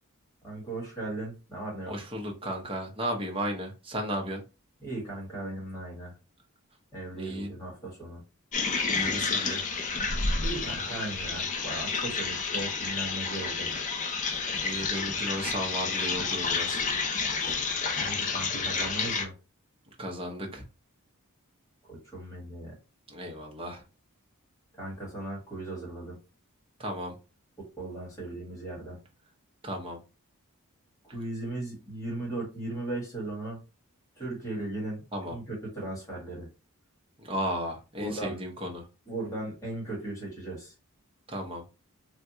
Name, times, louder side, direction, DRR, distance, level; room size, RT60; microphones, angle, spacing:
voice 1, 0.4-1.9 4.8-6.1 6.9-8.2 10.4-13.7 17.4-17.5 18.0-19.3 21.9-22.7 24.7-26.2 27.8-29.0 31.0-33.6 34.2-36.5 38.0-38.4 39.1-40.7, right 2 dB, 15° left, -4 dB, 1.5 m, -37 dB
voice 2, 1.9-4.4 7.2-7.6 8.8-9.6 14.6-16.8 20.0-20.6 23.1-23.8 26.8-27.2 29.6-30.0 35.1-35.4 37.2-38.9 41.3-41.6, equal, 25° right, 2 dB, 0.7 m, -34 dB
sound 1, 8.5-19.2, left 4 dB, 35° left, 0.4 m, -30 dB
3.4 x 2.2 x 2.7 m, 0.30 s
head